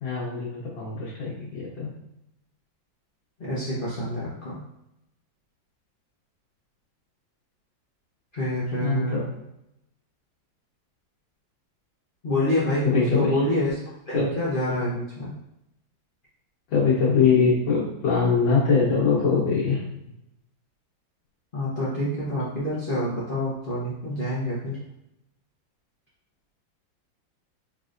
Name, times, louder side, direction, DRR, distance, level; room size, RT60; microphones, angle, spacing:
voice 1, 0.0-1.9 8.8-9.2 12.8-13.3 14.1-14.2 16.7-19.9, left 5 dB, 70° left, -7 dB, 1.7 m, -22 dB
voice 2, 3.4-4.6 8.3-9.2 12.2-13.7 14.1-15.3 21.5-24.8, left 1 dB, 50° left, -9 dB, 0.6 m, -27 dB
4.2 x 3.2 x 2.5 m, 0.83 s
omnidirectional pair, 2.1 m